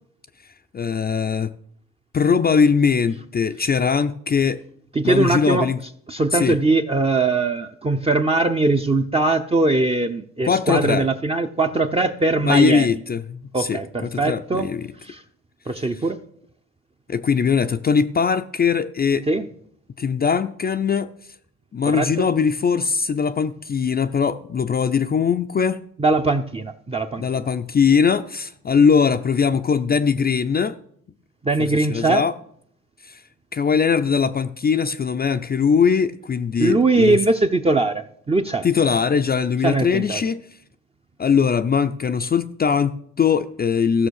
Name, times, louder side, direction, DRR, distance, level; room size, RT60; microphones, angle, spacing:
voice 1, 0.7-1.5 2.1-4.6 5.0-5.8 6.3-6.6 10.4-11.1 12.4-14.9 15.9-16.0 17.1-19.3 20.0-21.1 21.7-25.8 27.2-30.8 31.6-32.3 33.0-33.2 33.5-37.2 38.6-40.4 41.2-44.1, left 6 dB, 30° left, 0.5 m, -20 dB
voice 2, 4.9-5.7 6.1-12.9 13.5-14.7 15.0-15.2 15.7-16.2 19.3-19.5 21.9-22.3 26.0-27.2 31.4-32.2 36.6-38.7 39.6-40.2, right 3 dB, 20° right, 0.7 m, -21 dB
14.5 x 6.3 x 6.5 m
cardioid pair, 90°, 30 cm